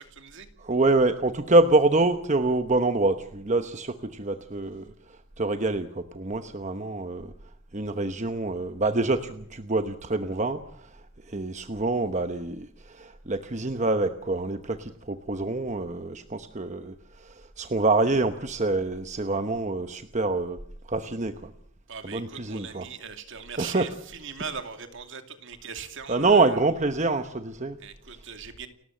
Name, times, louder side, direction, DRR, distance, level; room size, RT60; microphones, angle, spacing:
voice 1, 0.0-0.5 21.9-26.6 27.8-28.7, right 6 dB, 60° right, 7 dB, 2.5 m, -40 dB
voice 2, 0.6-4.9 5.4-7.3 7.7-10.9 11.3-16.9 17.2-20.6 20.9-21.5 22.0-22.8 23.6-23.9 26.1-27.8, right 2 dB, 35° right, 8 dB, 1.0 m, -26 dB
30.0 x 14.0 x 7.7 m, 0.67 s
head